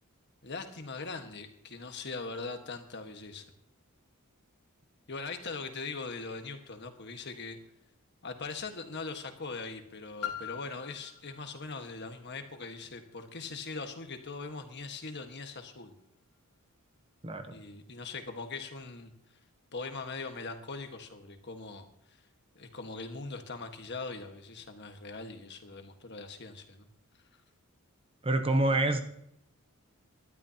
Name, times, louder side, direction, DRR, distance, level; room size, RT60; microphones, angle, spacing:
voice 1, 0.4-3.4 5.1-7.6 8.2-16.0 17.5-19.1 19.7-21.9 22.5-26.9, left 4 dB, 50° left, 6 dB, 1.5 m, -41 dB
Piano, 10.2-15.7 16.4-16.5, left 10 dB, 75° left, 2.1 m, -45 dB
voice 2, 28.2-29.0, right 2 dB, 25° right, 7 dB, 0.9 m, -26 dB
19.5 x 12.5 x 2.9 m, 0.75 s
head